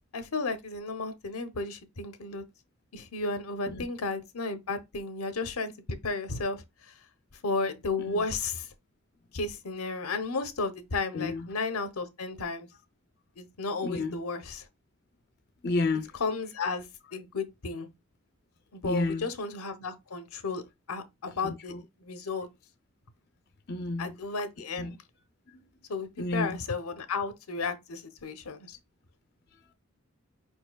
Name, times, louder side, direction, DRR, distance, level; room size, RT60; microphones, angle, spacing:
voice 1, 0.1-2.4 2.9-6.6 7.4-8.7 9.3-12.7 13.4-14.7 16.2-16.9 17.1-17.9 18.7-20.6 20.9-21.7 22.0-22.5 24.0-25.0 25.9-28.8, left 3 dB, 85° left, 0.9 m, -33 dB
voice 2, 11.1-11.5 13.8-14.2 15.6-16.1 18.8-19.3 21.4-21.8 23.7-24.1 24.8-25.0 26.2-26.6, left 3 dB, 50° left, 0.5 m, -31 dB
5.2 x 4.4 x 2.3 m
head